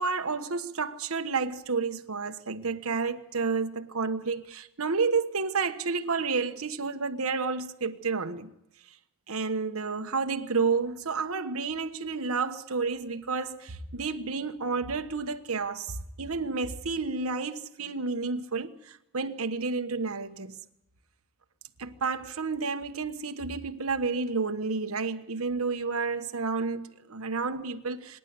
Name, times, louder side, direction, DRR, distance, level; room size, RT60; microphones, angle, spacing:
voice 1, 0.0-8.5 9.3-20.5 21.8-28.2, right 4 dB, 85° right, 1.3 m, -30 dB
26.0 x 11.0 x 9.5 m
head